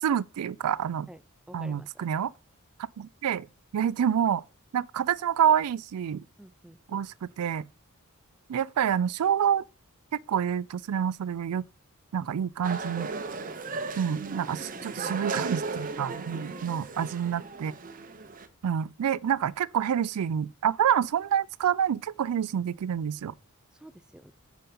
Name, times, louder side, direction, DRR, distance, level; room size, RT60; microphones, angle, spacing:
voice 1, 0.0-1.1 1.5-2.3 3.0-3.5 3.7-4.4 4.7-6.2 6.9-7.7 8.5-9.6 10.3-11.6 12.1-13.1 14.0-17.7 18.6-23.3, right 8 dB, 90° right, 0.4 m, -27 dB
voice 2, 1.5-2.0 6.4-7.1 14.3-14.9 16.3-17.1 23.7-24.3, right 1 dB, 5° right, 0.3 m, -50 dB
sound 1, 12.6-18.5, right 4 dB, 40° right, 0.7 m, -36 dB
9.0 x 5.2 x 4.2 m
head